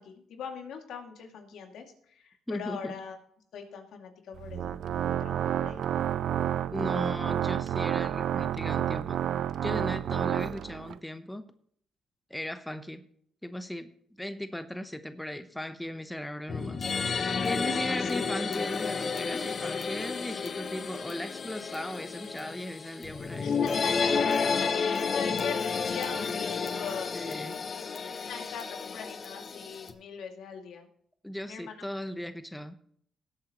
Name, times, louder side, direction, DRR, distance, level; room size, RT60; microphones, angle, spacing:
voice 1, 0.0-3.2 3.5-5.8 17.7-18.1 23.4-27.1 28.3-30.9 31.5-31.9, left 6 dB, 75° left, 3 dB, 2.3 m, -41 dB
voice 2, 2.5-2.9 6.7-9.2 9.6-11.4 12.3-13.0 13.4-13.9 14.2-23.5 27.1-27.6 31.2-32.7, left 1 dB, 5° left, 10 dB, 0.9 m, -37 dB
Organ, 4.3-11.0, right 10 dB, 70° right, 0.3 m, -30 dB
sound 1, 16.5-29.9, left 5 dB, 45° left, 1.1 m, -31 dB
19.0 x 8.3 x 3.0 m, 0.63 s
cardioid pair, 90°, 0 cm